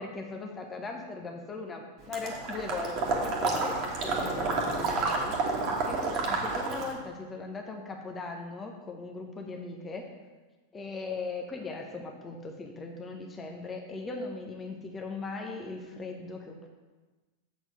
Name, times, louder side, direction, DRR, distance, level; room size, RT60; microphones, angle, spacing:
voice 1, 0.0-5.3 5.8-10.0 10.7-16.7, left 3 dB, 20° left, 2 dB, 1.0 m, -39 dB
Water / Liquid, 2.1-7.0, right 3 dB, 35° right, 1.5 m, -30 dB
7.2 x 4.6 x 6.6 m, 1.2 s
figure-of-eight pair, 90°, 0 cm